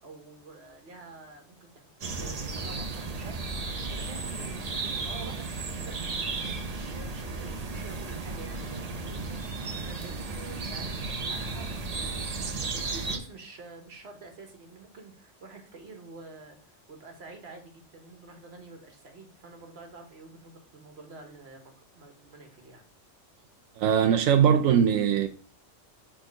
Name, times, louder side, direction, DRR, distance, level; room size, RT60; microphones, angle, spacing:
voice 1, 0.0-1.9 2.2-6.1 6.4-22.8, right 3 dB, 55° right, 1.5 m, -48 dB
sound 1, 2.0-13.2, right 3 dB, 40° right, 0.6 m, -34 dB
voice 2, 23.8-25.3, right 8 dB, 85° right, 1.0 m, -21 dB
6.2 x 3.6 x 4.6 m
omnidirectional pair, 1.3 m